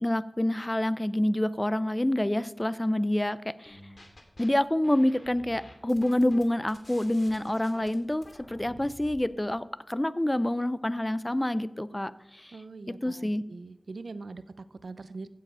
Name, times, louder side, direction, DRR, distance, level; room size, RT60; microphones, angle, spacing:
voice 1, 0.0-3.8 4.4-12.5 13.0-13.4, left 1 dB, 20° left, 15 dB, 0.5 m, -27 dB
sound 1, 3.7-4.5 4.8-9.3, left 1 dB, 45° left, 2.5 m, -50 dB
voice 2, 12.5-15.3, right 3 dB, 85° right, 13 dB, 0.6 m, -42 dB
15.5 x 7.5 x 5.5 m, 0.86 s
wide cardioid pair, 65°, 0 cm